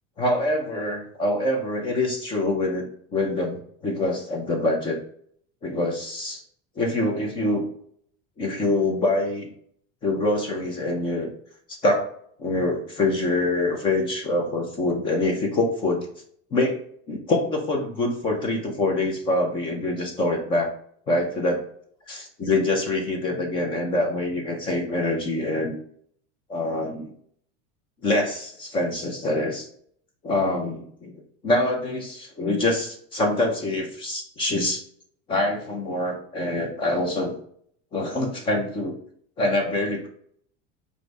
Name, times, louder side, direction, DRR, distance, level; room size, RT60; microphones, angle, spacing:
voice 1, 0.2-5.0 5.6-6.4 6.8-7.7 8.4-9.5 10.0-11.3 11.7-12.1 12.4-16.1 16.5-16.8 17.1-20.7 21.1-21.6 22.1-25.7 26.5-27.1 28.0-29.7 30.2-34.8 35.3-37.3 37.9-39.0 39.4-40.1, left 2 dB, 15° left, 2 dB, 0.4 m, -25 dB
4.8 x 2.6 x 3.1 m, 0.63 s
supercardioid pair, 170°, 34 cm